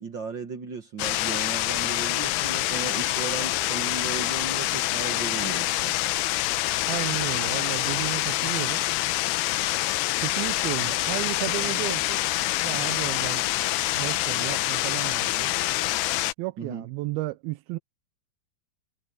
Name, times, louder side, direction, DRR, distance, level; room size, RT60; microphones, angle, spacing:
voice 1, 0.0-6.0 16.6-16.9, right 5 dB, 65° right, 1.1 m, -36 dB
sound 1, 1.0-16.3, left 17 dB, 85° left, 2.7 m, -26 dB
voice 2, 6.9-8.8 10.2-12.2 12.6-13.4 13.9-15.6 16.4-17.8, right 18 dB, 80° right, 2.5 m, -33 dB
omnidirectional pair, 4.5 m